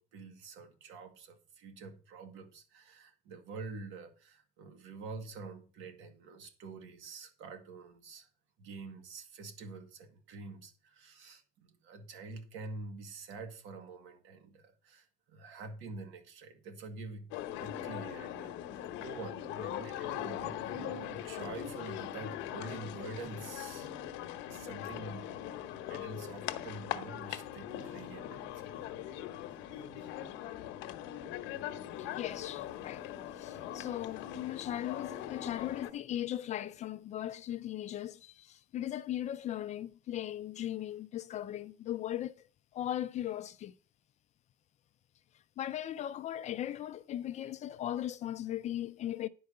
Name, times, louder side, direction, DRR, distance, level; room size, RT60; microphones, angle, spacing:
voice 1, 0.0-8.3 8.6-17.3 17.6-18.5 19.0-25.4 25.9-29.2 29.6-30.1, right 3 dB, 70° right, 2.1 m, -47 dB
sound 1, 17.3-35.9, left 11 dB, 70° left, 0.9 m, -41 dB
voice 2, 32.0-33.1 33.4-42.4 42.7-43.7 45.6-49.3, left 12 dB, 35° left, 0.4 m, -38 dB
10.5 x 4.7 x 6.7 m
cardioid pair, 155°, 20 cm